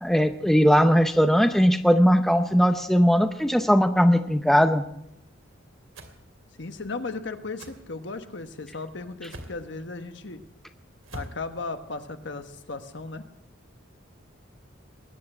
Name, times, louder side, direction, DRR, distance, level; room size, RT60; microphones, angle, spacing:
voice 1, 0.0-4.8, equal, ahead, 6 dB, 0.7 m, -19 dB
sound 1, 5.9-6.2 7.6-7.8 9.2-9.6 11.0-11.4, right 1 dB, 85° right, 2.6 m, -40 dB
voice 2, 6.6-10.4 11.1-13.2, left 3 dB, 60° left, 8 dB, 1.2 m, -36 dB
21.0 x 8.6 x 7.7 m, 0.79 s
head